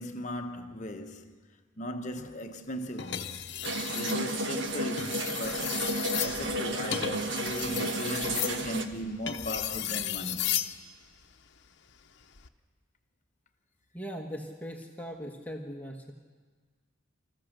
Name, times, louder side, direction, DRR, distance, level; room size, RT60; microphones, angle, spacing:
voice 1, 0.0-1.4 1.8-3.5 3.9-10.5, equal, 35° left, 1.0 m, -38 dB
sound 1, 3.0-4.2 4.9-10.8 12.2-12.5, left 11 dB, 60° left, 0.9 m, -35 dB
sound 2, 3.6-8.8, right 1 dB, 60° right, 1.3 m, -32 dB
voice 2, 13.9-16.1, equal, 10° left, 1.3 m, -40 dB
27.0 x 14.5 x 6.6 m
head